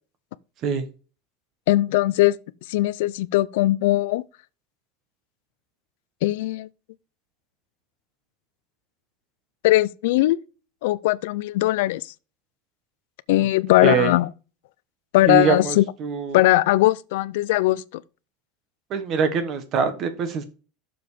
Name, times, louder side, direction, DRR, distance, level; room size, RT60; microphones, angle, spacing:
voice 1, 1.7-2.4 2.7-4.2 6.2-6.7 9.6-10.4 10.8-12.1 13.3-14.3 15.1-15.8 16.3-18.0, left 17 dB, 70° left, 0.5 m, -20 dB
voice 2, 13.8-14.2 15.3-16.4 18.9-20.4, right 6 dB, 30° right, 1.2 m, -24 dB
6.9 x 5.7 x 4.9 m
supercardioid pair, 180°, 0 cm